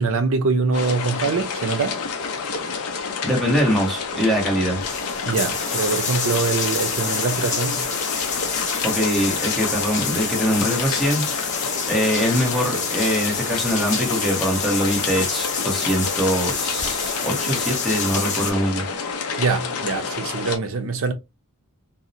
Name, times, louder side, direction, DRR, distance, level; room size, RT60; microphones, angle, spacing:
voice 1, 0.0-2.0 5.3-7.8 19.4-21.1, right 4 dB, 65° right, 0.5 m, -23 dB
sound 1, 0.7-20.6, left 5 dB, 75° left, 0.5 m, -29 dB
voice 2, 3.2-4.8 8.8-11.5 11.9-18.8, equal, ahead, 0.9 m, -23 dB
sound 2, 4.2-4.3 4.6-18.5, left 5 dB, 35° left, 0.6 m, -28 dB
2.7 x 2.0 x 2.5 m
head